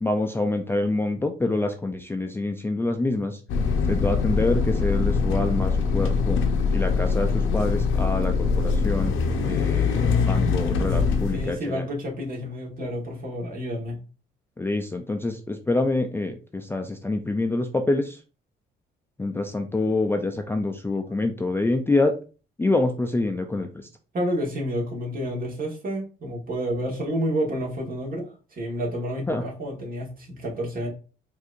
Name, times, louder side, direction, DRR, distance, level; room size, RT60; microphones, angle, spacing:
voice 1, 0.0-3.4 3.9-6.4 6.7-9.1 9.4-11.9 14.6-18.2 19.2-22.1 22.6-23.8 29.3-29.4, left 2 dB, 10° left, 4 dB, 0.4 m, -26 dB
sound 1, 3.5-11.5, left 5 dB, 85° left, 0.6 m, -23 dB
voice 2, 11.3-14.0 24.1-30.9, equal, 45° right, 0 dB, 1.4 m, -29 dB
4.4 x 2.6 x 2.4 m, 0.35 s
cardioid pair, 90°, 20 cm